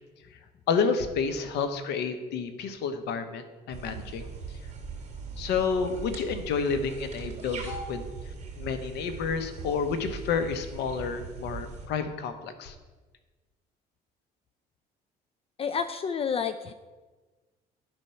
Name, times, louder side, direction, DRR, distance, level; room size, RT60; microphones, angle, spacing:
voice 1, 0.7-4.3 5.4-8.0 8.6-12.7, left 5 dB, 85° left, 8 dB, 0.9 m, -30 dB
sound 1, 3.7-11.9, right 5 dB, 40° right, 2.6 m, -40 dB
voice 2, 15.6-16.7, left 6 dB, 35° left, 11 dB, 0.4 m, -29 dB
10.5 x 4.4 x 5.6 m, 1.3 s
cardioid pair, 110°, 17 cm